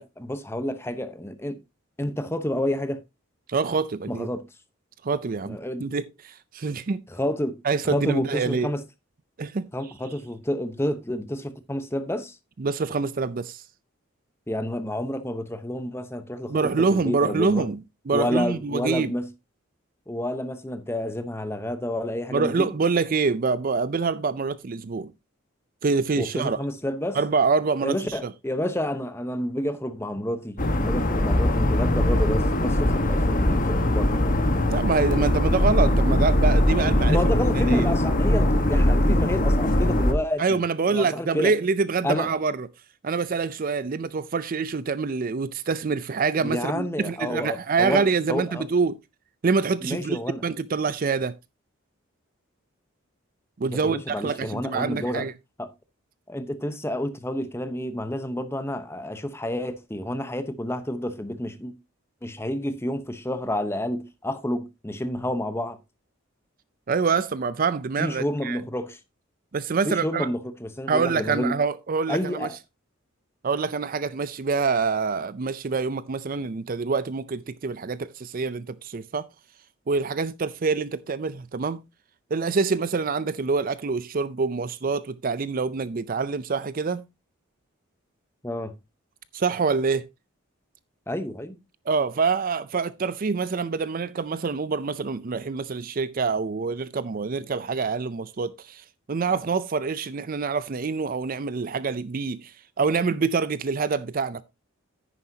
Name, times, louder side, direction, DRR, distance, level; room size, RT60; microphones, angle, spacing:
voice 1, 0.0-1.6 2.0-3.0 4.1-4.4 5.5-5.9 7.1-7.5 7.8-8.8 9.7-12.4 14.5-16.6 16.9-17.7 18.1-19.2 20.1-22.7 26.2-27.2 27.8-34.2 37.0-41.5 42.0-42.3 46.4-48.6 49.8-50.4 53.7-55.3 55.6-55.7 56.3-61.7 62.2-65.8 68.0-69.0 69.8-71.5 72.1-72.6 88.4-88.7 91.1-91.6, left 1 dB, 10° left, 0.9 m, -29 dB
voice 2, 3.5-4.3 5.0-7.0 7.6-8.7 9.4-9.7 12.6-13.6 16.5-17.8 18.1-19.1 22.3-25.1 25.8-26.6 27.1-28.3 34.7-37.2 37.6-37.8 40.4-42.7 43.0-49.0 49.4-51.3 53.6-55.3 66.9-68.6 69.5-70.3 70.9-72.5 73.4-79.3 79.9-81.8 82.3-87.0 89.3-90.1 91.9-104.4, right 4 dB, 45° right, 0.4 m, -26 dB
sound 1, 30.6-40.1, left 1 dB, 40° left, 1.3 m, -21 dB
9.9 x 9.8 x 2.8 m
head